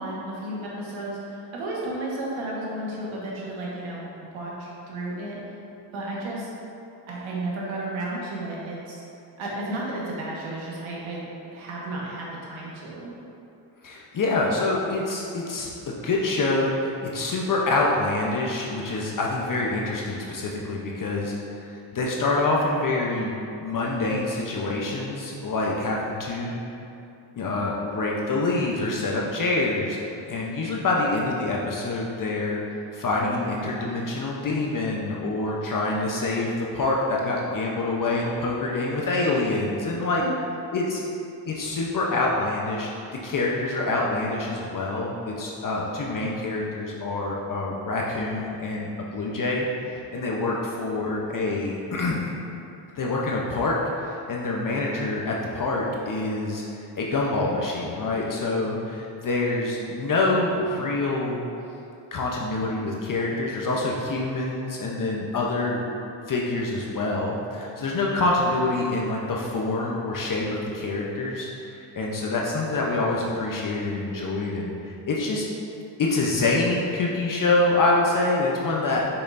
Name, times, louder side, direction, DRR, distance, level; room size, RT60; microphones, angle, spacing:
voice 1, 0.0-4.0 4.3-5.4 5.9-6.5 7.1-9.0 9.4-11.2 11.5-13.1, right 1 dB, 85° right, -4 dB, 1.5 m, -33 dB
voice 2, 13.8-23.3 23.6-26.6 27.3-30.0 30.3-40.2 40.7-41.0 41.5-42.9 43.2-52.2 52.9-61.4 62.1-65.8 66.3-75.5 76.0-79.0, left 2 dB, 45° left, -3 dB, 0.8 m, -26 dB
6.6 x 5.8 x 2.6 m, 2.7 s
cardioid pair, 85°, 46 cm